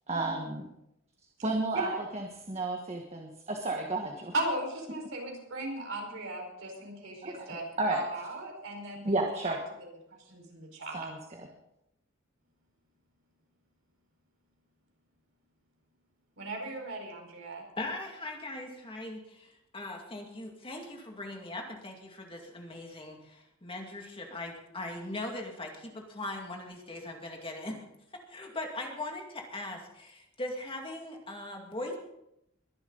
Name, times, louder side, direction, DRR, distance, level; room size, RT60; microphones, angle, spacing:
voice 1, 0.1-0.7 1.4-4.3 7.2-7.5 7.8-8.0 9.0-9.6 10.9-11.5, right 2 dB, 30° right, 2 dB, 1.5 m, -32 dB
voice 2, 4.3-11.1 16.4-17.6, right 2 dB, 65° right, 1 dB, 4.9 m, -37 dB
voice 3, 17.8-27.8 28.1-32.0, left 2 dB, 25° left, 2 dB, 2.3 m, -40 dB
22.0 x 11.5 x 4.0 m, 0.82 s
head